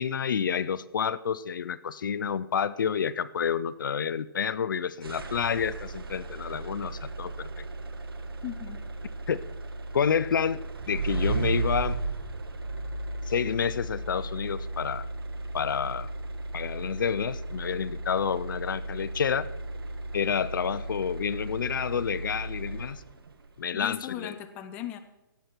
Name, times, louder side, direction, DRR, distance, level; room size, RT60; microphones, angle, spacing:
voice 1, 0.0-7.5 9.3-9.4 9.9-10.6 10.9-12.0 13.3-15.1 15.5-16.1 16.5-19.5 20.1-23.0 23.6-24.4, left 7 dB, 60° left, 17 dB, 0.5 m, -29 dB
sound 1, 5.0-23.3, right 2 dB, 80° right, 1.6 m, -35 dB
voice 2, 8.4-8.8 23.7-25.0, left 12 dB, 10° left, 9 dB, 0.4 m, -37 dB
17.0 x 8.0 x 4.5 m, 1.0 s
hypercardioid pair, 155°, 12 cm